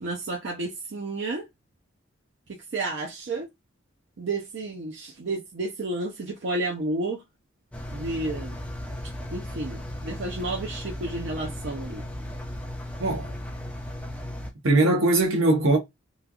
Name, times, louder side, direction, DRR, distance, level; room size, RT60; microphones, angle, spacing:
voice 1, 0.0-1.5 2.7-3.5 4.2-7.2 7.9-8.6 9.3-12.0, right 2 dB, 60° right, 0.5 m, -31 dB
Engine, 7.7-14.5, left 1 dB, 5° left, 0.3 m, -36 dB
voice 2, 13.0-13.3 14.6-15.8, right 2 dB, 80° right, 0.9 m, -21 dB
3.1 x 2.4 x 2.2 m
head